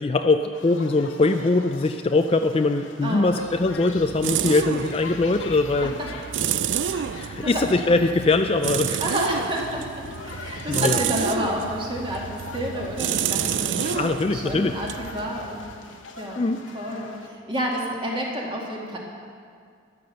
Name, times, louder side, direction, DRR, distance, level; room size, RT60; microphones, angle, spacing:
voice 1, 0.0-5.9 7.2-9.0 10.4-11.0 13.8-14.7 16.4-16.6, left 3 dB, 30° left, 7 dB, 0.4 m, -22 dB
sound 1, 0.5-17.3, left 4 dB, 75° left, 1.1 m, -43 dB
voice 2, 3.0-3.6 5.8-6.1 6.9-7.6 9.0-16.4 16.7-19.0, equal, 25° right, -2 dB, 2.1 m, -30 dB
sound 2, 3.3-15.9, right 8 dB, 65° right, 0.4 m, -30 dB
13.5 x 10.5 x 6.4 m, 2.2 s
head